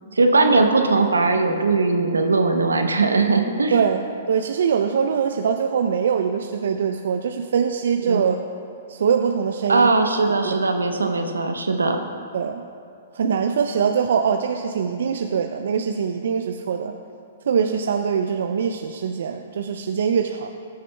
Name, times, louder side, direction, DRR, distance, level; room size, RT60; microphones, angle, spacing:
voice 1, 0.2-3.9 8.1-8.2 9.7-12.0, right 3 dB, 85° right, 5 dB, 0.8 m, -19 dB
voice 2, 3.7-8.4 8.9-9.9 10.4-10.5 12.3-12.6 13.1-16.9 17.5-20.5, right 6 dB, 65° right, 5 dB, 0.4 m, -23 dB
19.0 x 6.5 x 2.2 m, 2.4 s
hypercardioid pair, 120°, 0 cm